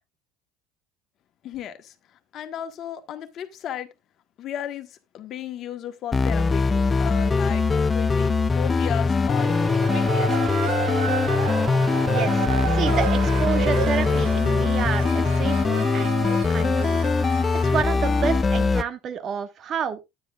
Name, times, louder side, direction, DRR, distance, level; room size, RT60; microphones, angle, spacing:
voice 1, 1.4-3.9 4.4-9.6 9.9-10.6, left 10 dB, 55° left, 1.5 m, -35 dB
sound 1, 6.1-18.8, left 4 dB, 25° left, 0.4 m, -22 dB
sound 2, 9.4-14.4, right 6 dB, 30° right, 1.1 m, -34 dB
sound 3, 9.8-18.7, right 7 dB, 80° right, 1.5 m, -32 dB
voice 2, 12.1-12.4 12.7-17.0 17.5-20.1, right 7 dB, 45° right, 1.4 m, -30 dB
9.8 x 9.5 x 2.4 m
supercardioid pair, 85°, 0 cm